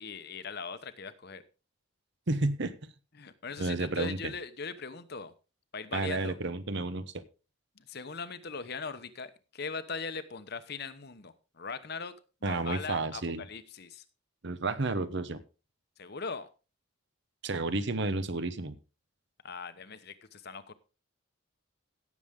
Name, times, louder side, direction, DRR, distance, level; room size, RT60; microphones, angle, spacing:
voice 1, 0.0-1.4 3.1-5.3 5.7-6.4 7.8-12.1 12.4-14.0 16.0-16.5 19.4-20.7, left 5 dB, 50° left, 11 dB, 1.0 m, -40 dB
voice 2, 2.3-2.7 3.6-4.3 5.9-7.2 12.4-13.4 14.4-15.4 17.4-18.7, right 2 dB, 60° right, 13 dB, 1.0 m, -31 dB
17.0 x 7.2 x 3.7 m, 0.32 s
head